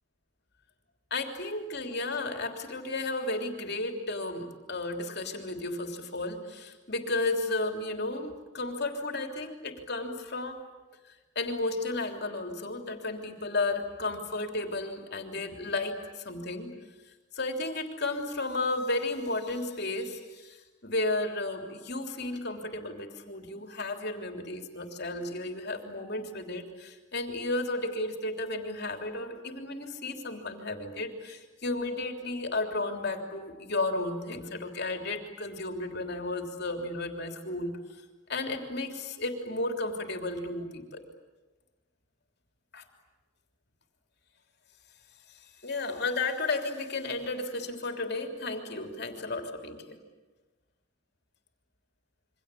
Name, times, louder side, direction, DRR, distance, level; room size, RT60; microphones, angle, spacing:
voice 1, 1.1-10.6 11.0-16.7 17.3-38.0 38.3-41.0 42.7-42.8 45.3-50.0, left 2 dB, 50° left, 4 dB, 3.3 m, -33 dB
28.0 x 24.5 x 8.5 m, 1.2 s
head